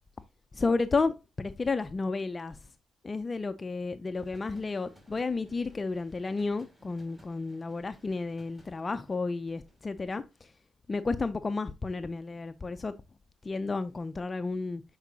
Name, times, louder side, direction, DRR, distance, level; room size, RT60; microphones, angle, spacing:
voice 1, 0.5-2.6 3.0-10.5 10.9-12.9 13.4-14.8, left 3 dB, 30° left, 0.5 m, -32 dB
sound 1, 4.1-9.9, equal, 10° right, 2.7 m, -61 dB
7.9 x 4.7 x 2.8 m
cardioid pair, 90°, 0 cm